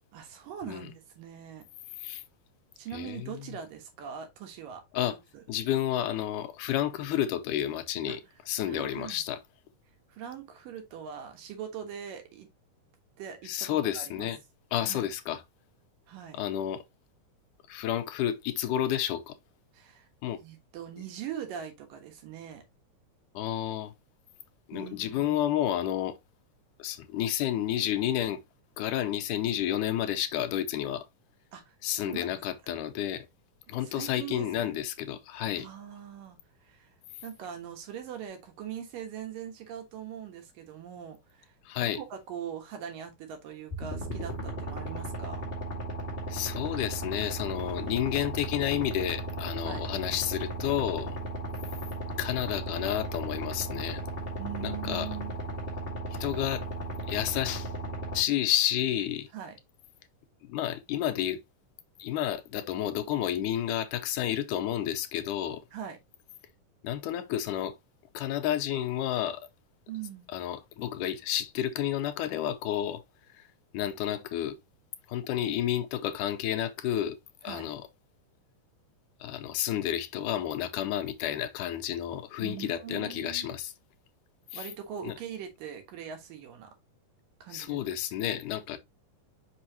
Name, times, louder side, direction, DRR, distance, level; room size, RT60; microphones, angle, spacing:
voice 1, 0.1-1.6 2.8-5.4 8.1-8.2 8.6-9.2 10.1-12.5 13.2-14.3 14.8-15.1 16.1-16.4 19.7-20.1 20.4-22.6 24.7-25.4 31.5-32.3 33.7-34.7 35.6-36.9 37.2-45.5 49.6-49.8 54.4-55.3 59.3-59.6 65.7-66.0 69.9-70.3 77.4-77.7 82.4-83.5 84.5-86.7 87.4-87.8, right 9 dB, 85° right, 3.1 m, -42 dB
voice 2, 2.9-3.4 4.9-5.2 5.5-8.2 8.5-9.4 13.5-14.4 14.7-15.4 16.3-16.8 17.7-19.4 20.2-20.4 23.3-23.9 24.7-26.2 26.8-28.4 28.8-31.1 31.8-33.3 33.7-35.7 41.7-42.0 46.3-51.2 52.2-54.0 54.6-55.1 56.1-56.7 57.1-57.7 58.1-59.3 60.4-61.4 62.0-65.6 66.8-67.8 68.1-69.4 70.3-73.0 73.3-73.5 73.7-74.6 75.1-77.2 77.4-77.8 79.2-83.7 84.5-84.7 85.0-85.1 87.5-88.8, left 11 dB, 80° left, 2.2 m, -30 dB
sound 1, 43.7-58.2, right 2 dB, 20° left, 1.7 m, -36 dB
6.0 x 5.6 x 2.8 m
omnidirectional pair, 3.8 m